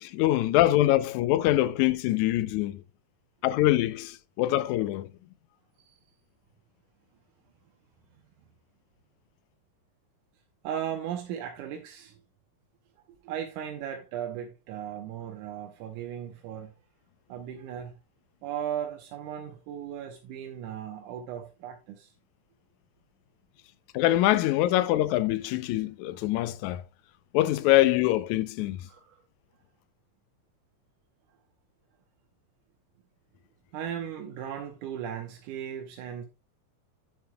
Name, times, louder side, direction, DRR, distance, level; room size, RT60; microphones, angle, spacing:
voice 1, 0.0-2.8 3.4-5.1 23.9-26.8 27.3-28.8, left 15 dB, 80° left, 2.0 m, -24 dB
voice 2, 10.6-12.2 13.1-16.7 17.3-18.0 18.4-22.1 28.9-29.2 33.7-36.3, right 9 dB, 90° right, 2.4 m, -37 dB
10.5 x 7.6 x 2.2 m
omnidirectional pair, 3.5 m